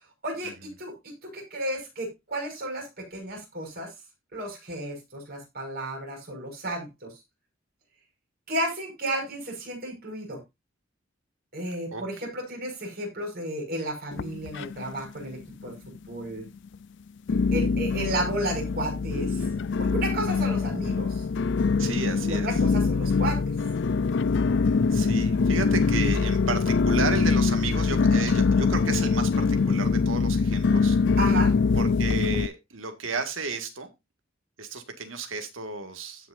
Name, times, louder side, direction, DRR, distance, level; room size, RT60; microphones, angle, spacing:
voice 1, 0.2-0.5 0.8-0.9 1.2-3.9 4.3-7.1 8.5-10.4 11.5-16.4 17.5-19.4 19.8-21.2 22.2-23.4 31.2-31.5, right 1 dB, 50° right, 6.2 m, -33 dB
sound 1, 14.1-15.1 15.3-16.0 16.5-16.6 17.3-32.5, left 4 dB, 65° left, 0.5 m, -24 dB
voice 2, 21.8-22.5 24.9-31.0 31.7-33.9 34.6-36.3, right 4 dB, 85° right, 2.0 m, -33 dB
16.5 x 6.0 x 2.6 m
head